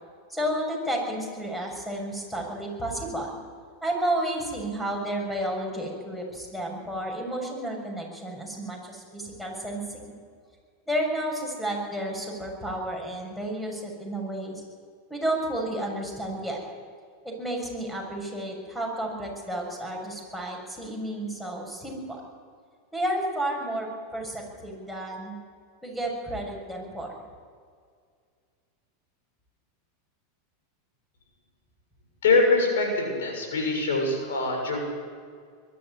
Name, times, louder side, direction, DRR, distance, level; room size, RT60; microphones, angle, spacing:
voice 1, 0.3-3.3 3.8-10.1 10.9-14.6 15.1-16.6 17.2-22.2 22.9-25.4 25.8-27.1, right 1 dB, 5° left, 1 dB, 7.0 m, -31 dB
voice 2, 32.2-34.8, left 3 dB, 75° left, 2 dB, 6.9 m, -23 dB
22.0 x 13.0 x 9.6 m, 2.1 s
hypercardioid pair, 100°, 0 cm